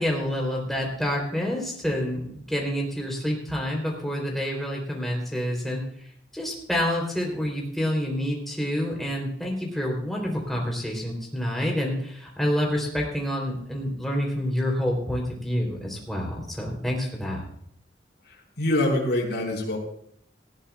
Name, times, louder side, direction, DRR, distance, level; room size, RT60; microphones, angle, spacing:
voice 1, 0.0-5.8 6.3-17.4, equal, ahead, -1 dB, 3.3 m, -28 dB
voice 2, 18.3-19.8, left 1 dB, 65° left, -4 dB, 4.7 m, -25 dB
19.0 x 14.0 x 2.4 m, 0.66 s
head